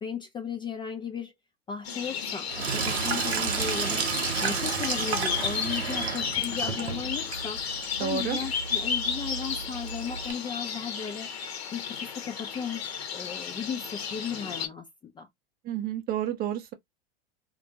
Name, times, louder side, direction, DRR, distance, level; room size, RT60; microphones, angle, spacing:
voice 1, 0.0-1.3 1.7-4.1 4.4-7.6 8.0-11.3 11.7-14.9 15.2-15.3, left 7 dB, 15° left, 0.4 m, -36 dB
sound 1, 1.8-14.7, left 7 dB, 70° left, 0.9 m, -33 dB
Sink (filling or washing), 2.5-10.3, right 6 dB, 80° right, 0.7 m, -32 dB
voice 2, 8.0-8.4 15.6-16.7, right 9 dB, 30° right, 0.6 m, -30 dB
2.3 x 2.1 x 2.7 m
hypercardioid pair, 90°, 31 cm